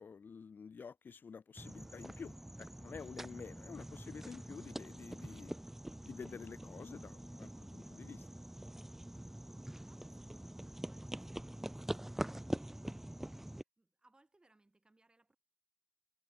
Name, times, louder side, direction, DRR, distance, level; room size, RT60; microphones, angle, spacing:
voice 1, 0.0-5.6 6.0-8.3, left 5 dB, 85° left, 0.7 m, -50 dB
sound 1, 1.6-13.6, right 1 dB, 10° right, 0.3 m, -45 dB
voice 2, 9.2-15.4, right 2 dB, 25° right, 6.1 m, -71 dB
wide cardioid pair, 110°, 3 cm